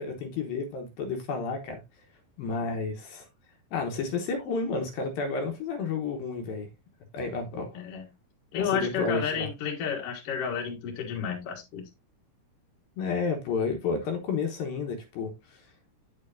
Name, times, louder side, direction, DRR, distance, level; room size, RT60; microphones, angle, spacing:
voice 1, 0.0-1.8 2.4-3.3 3.7-6.7 7.1-7.8 8.6-9.5 13.0-15.3, left 4 dB, 70° left, 2.7 m, -31 dB
voice 2, 8.5-11.8, left 6 dB, 50° left, 2.0 m, -31 dB
9.4 x 6.6 x 2.6 m
omnidirectional pair, 4.5 m